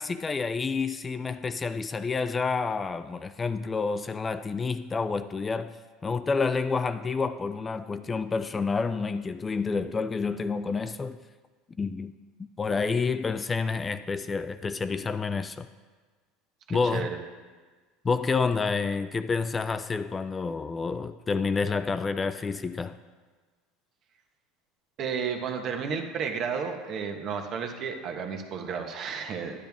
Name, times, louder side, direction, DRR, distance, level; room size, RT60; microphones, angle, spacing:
voice 1, 0.0-5.8 6.0-11.2 11.8-12.1 12.6-15.7 16.7-17.1 18.0-23.0, left 4 dB, 20° left, 0.3 m, -29 dB
voice 2, 16.7-17.2 25.0-29.7, right 6 dB, 45° right, 1.3 m, -32 dB
10.5 x 10.0 x 3.6 m
supercardioid pair, 115°, 0 cm